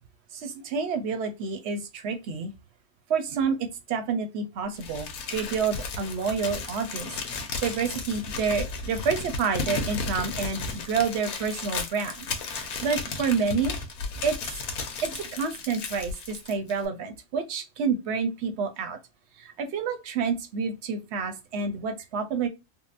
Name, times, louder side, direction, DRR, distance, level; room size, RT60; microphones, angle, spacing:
voice 1, 0.3-2.5 3.1-13.8 14.2-14.4 15.0-19.0 19.4-22.5, right 5 dB, 60° right, 0.8 m, -29 dB
Crumpling crinkling, 4.8-16.9, left 4 dB, 90° left, 1.2 m, -34 dB
3.7 x 2.0 x 2.4 m
omnidirectional pair, 1.5 m